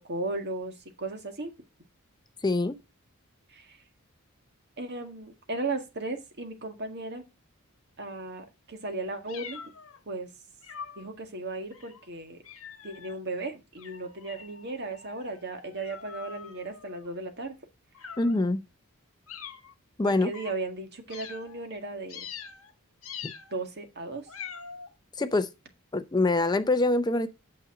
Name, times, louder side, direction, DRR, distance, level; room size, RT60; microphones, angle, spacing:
voice 1, 0.1-1.5 3.5-3.8 4.8-7.2 8.0-9.6 10.1-10.3 11.0-12.4 12.8-17.5 20.0-22.2 23.5-24.3, right 2 dB, 50° right, 1.9 m, -36 dB
voice 2, 2.4-2.8 18.2-18.6 20.0-20.3 25.2-25.5 25.9-27.3, left 2 dB, 20° left, 0.5 m, -24 dB
sound 1, 9.3-10.0 10.6-11.1 11.7-12.0 12.4-13.2 13.8-17.2 17.9-18.5 19.3-19.7 20.3-20.5 21.1-21.6 22.1-22.7 23.0-23.6 24.3-24.9, left 7 dB, 70° left, 1.4 m, -44 dB
8.8 x 6.9 x 3.8 m
head